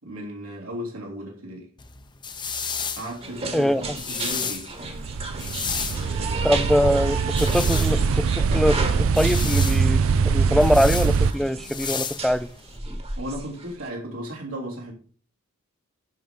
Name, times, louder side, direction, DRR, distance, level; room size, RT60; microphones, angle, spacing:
voice 1, 0.0-1.7 3.0-4.7 5.9-6.6 13.2-14.9, equal, 90° right, 3.3 m, -35 dB
sound 1, 1.8-12.8, left 6 dB, 20° left, 0.7 m, -34 dB
sound 2, 3.2-13.9, right 3 dB, 30° right, 1.4 m, -34 dB
sound 3, 4.9-11.3, right 5 dB, 70° right, 0.4 m, -23 dB
voice 2, 6.4-12.5 12.9-13.0, equal, ahead, 0.3 m, -23 dB
10.5 x 4.7 x 5.1 m
head